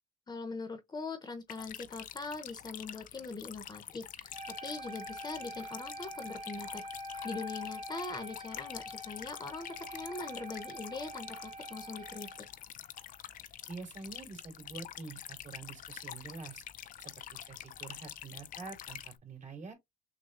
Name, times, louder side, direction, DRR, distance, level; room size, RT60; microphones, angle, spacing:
voice 1, 0.3-4.4 4.6-6.8 7.2-12.3, left 3 dB, 25° left, 0.9 m, -42 dB
sound 1, 1.5-19.2, left 11 dB, 55° left, 0.5 m, -47 dB
Wind instrument woodwind instrument, 4.3-12.6, equal, 30° right, 1.4 m, -45 dB
voice 2, 13.7-16.6 17.0-19.7, right 4 dB, 45° right, 2.8 m, -47 dB
6.4 x 2.3 x 2.4 m
cardioid pair, 110°, 17 cm